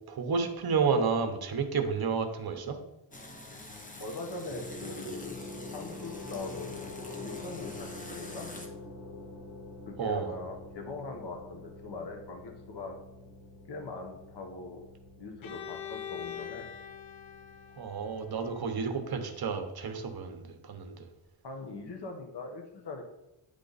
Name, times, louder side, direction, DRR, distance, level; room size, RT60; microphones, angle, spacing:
voice 1, 0.1-2.8 10.0-10.3 17.8-21.1, right 5 dB, 50° right, 7 dB, 0.8 m, -31 dB
sound 1, 3.1-8.7, left 2 dB, 15° left, 0.7 m, -46 dB
voice 2, 4.0-5.4 5.7-6.8 7.2-8.5 9.9-13.0 13.7-14.8 15.2-16.7 21.4-23.0, left 3 dB, 60° left, 3 dB, 1.0 m, -41 dB
sound 2, 4.5-20.1, left 2 dB, 5° right, 1.2 m, -46 dB
Bowed string instrument, 15.4-19.2, left 10 dB, 85° left, 0.7 m, -44 dB
9.7 x 3.4 x 4.0 m, 0.93 s
wide cardioid pair, 145°, 46 cm